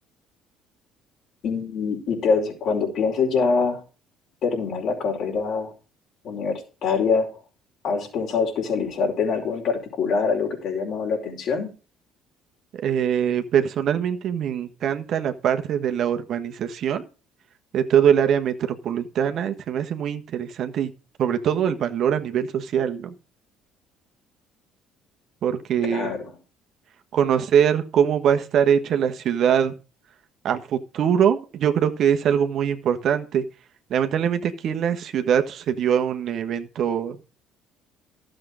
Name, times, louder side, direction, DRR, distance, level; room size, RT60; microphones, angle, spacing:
voice 1, 1.4-3.8 4.4-5.7 6.2-7.3 7.8-11.7 25.8-26.3, left 5 dB, 60° left, 1 dB, 5.1 m, -24 dB
voice 2, 12.7-17.1 17.7-20.9 21.2-23.1 25.4-26.1 27.1-29.8 30.4-33.4 33.9-37.2, right 8 dB, 60° right, 7 dB, 1.4 m, -22 dB
12.5 x 7.8 x 4.9 m, 0.34 s
supercardioid pair, 85°, 0 cm